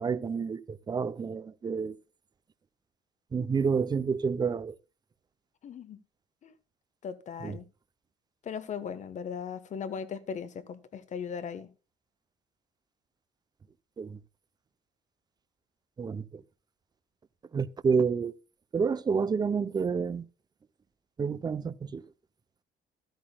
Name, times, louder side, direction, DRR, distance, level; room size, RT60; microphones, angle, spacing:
voice 1, 0.0-1.9 3.3-4.7 7.4-7.5 14.0-14.2 16.0-16.2 17.5-18.3 18.7-20.3 21.2-22.0, right 5 dB, 25° right, 0.6 m, -29 dB
voice 2, 5.6-6.0 6.4-6.5 7.0-7.6 8.4-11.7, left 7 dB, 45° left, 1.1 m, -38 dB
12.5 x 12.5 x 2.2 m
cardioid pair, 110°, 17 cm